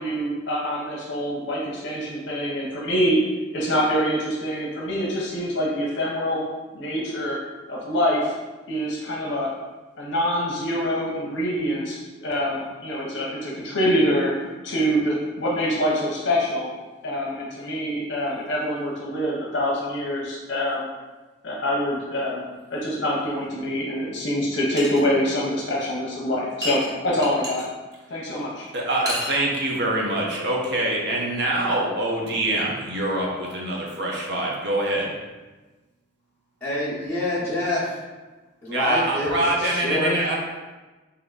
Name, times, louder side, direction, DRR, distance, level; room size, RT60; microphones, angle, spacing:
voice 1, 0.0-3.2 3.5-6.4 6.7-7.4 7.7-8.3 8.7-9.5 10.0-14.4 14.6-16.7 17.0-20.9 21.4-22.4 22.7-27.7 28.1-28.7, equal, 60° left, -4 dB, 0.7 m, -25 dB
sound 1, 24.8-25.0 26.6-27.6 28.9-29.4, equal, 20° right, 0.6 m, -30 dB
voice 2, 28.7-35.1 38.7-40.4, right 1 dB, 55° right, -2 dB, 0.7 m, -24 dB
voice 3, 36.6-37.9 38.6-40.2, left 2 dB, 5° left, -15 dB, 0.9 m, -26 dB
3.5 x 2.9 x 3.9 m, 1.2 s
head